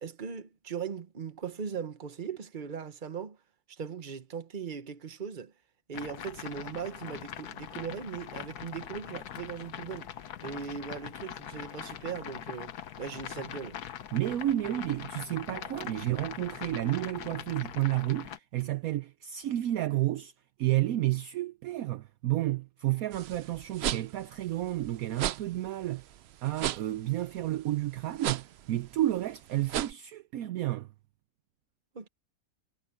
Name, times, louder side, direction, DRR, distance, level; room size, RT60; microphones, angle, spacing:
voice 1, 0.0-3.4 3.7-5.5 5.9-10.1 10.4-13.8 31.9-32.1, right 6 dB, 35° right, 1.1 m, -39 dB
sound 1, 5.9-18.4, left 10 dB, 80° left, 1.4 m, -42 dB
voice 2, 14.1-20.3 20.6-26.0 26.4-30.9, right 14 dB, 70° right, 1.0 m, -31 dB
sound 2, 23.1-29.9, right 11 dB, 85° right, 0.5 m, -36 dB
omnidirectional pair, 1.7 m